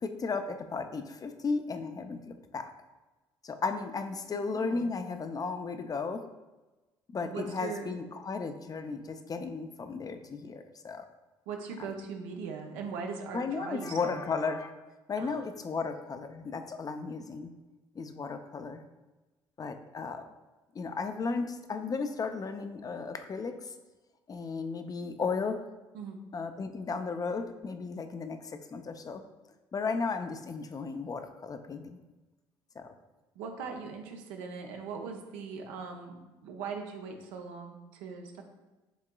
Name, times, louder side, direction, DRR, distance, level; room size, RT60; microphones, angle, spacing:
voice 1, 0.0-2.2 2.5-2.7 3.4-6.2 7.1-11.0 11.8-11.9 13.3-14.7 15.1-17.5 18.0-18.8 19.6-20.2 20.7-23.7 24.3-25.6 26.3-29.2 29.7-32.0 32.8-32.9, left 4 dB, 35° left, 7 dB, 0.5 m, -35 dB
voice 2, 4.3-4.9 7.2-7.9 11.5-14.2 15.2-15.4 25.9-26.2 33.4-36.1 36.4-38.4, right 5 dB, 80° right, 3 dB, 0.6 m, -40 dB
6.1 x 3.7 x 2.3 m, 1.1 s
hypercardioid pair, 60°, 11 cm